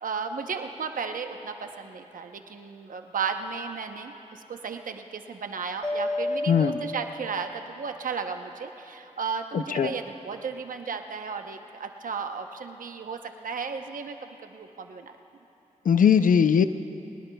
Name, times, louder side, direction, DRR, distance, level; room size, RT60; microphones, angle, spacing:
voice 1, 0.0-15.2, right 5 dB, 80° right, 6 dB, 0.8 m, -34 dB
Mallet percussion, 5.8-7.9, left 1 dB, 20° left, 2.8 m, -32 dB
voice 2, 6.5-6.8 9.5-9.9 15.9-16.6, left 7 dB, 80° left, 11 dB, 0.5 m, -20 dB
22.0 x 19.5 x 2.3 m, 2.9 s
cardioid pair, 50°, 14 cm